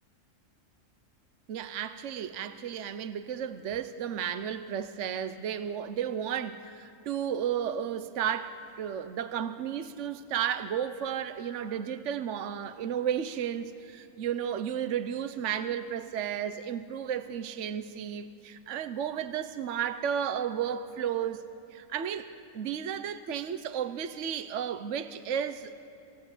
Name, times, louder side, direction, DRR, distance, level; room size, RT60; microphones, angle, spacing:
voice 1, 1.5-25.7, right 9 dB, 65° right, 11 dB, 1.1 m, -33 dB
29.0 x 18.0 x 8.2 m, 2.9 s
omnidirectional pair, 1.4 m